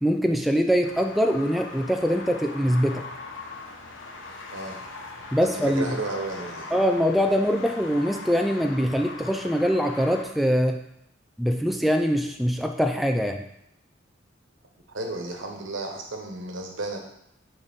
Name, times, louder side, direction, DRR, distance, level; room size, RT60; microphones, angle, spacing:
voice 1, 0.0-3.0 5.3-5.9 6.7-10.8 11.4-13.4, equal, ahead, 4 dB, 0.4 m, -23 dB
sound 1, 0.8-10.2, left 3 dB, 70° left, 0.9 m, -40 dB
voice 2, 5.4-6.7 14.9-17.0, right 2 dB, 80° right, 2 dB, 1.2 m, -33 dB
6.5 x 5.1 x 3.6 m, 0.80 s
head